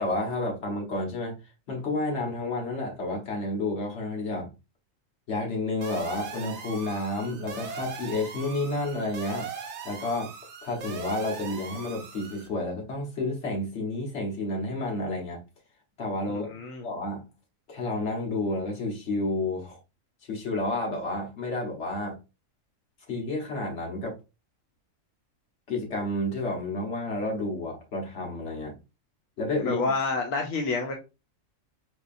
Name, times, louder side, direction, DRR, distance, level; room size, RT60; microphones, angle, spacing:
voice 1, 0.0-1.3 1.7-4.5 5.3-9.5 9.8-10.3 10.6-15.4 16.0-16.5 16.8-17.2 17.7-19.8 20.3-22.1 23.1-24.2 25.7-28.7 29.4-29.8, left 2 dB, 60° left, 1.5 m, -30 dB
sound 1, 5.8-12.5, right 5 dB, 65° right, 0.9 m, -40 dB
voice 2, 16.3-16.9 29.6-31.0, left 3 dB, 85° left, 1.1 m, -29 dB
4.6 x 2.7 x 2.4 m
omnidirectional pair, 1.4 m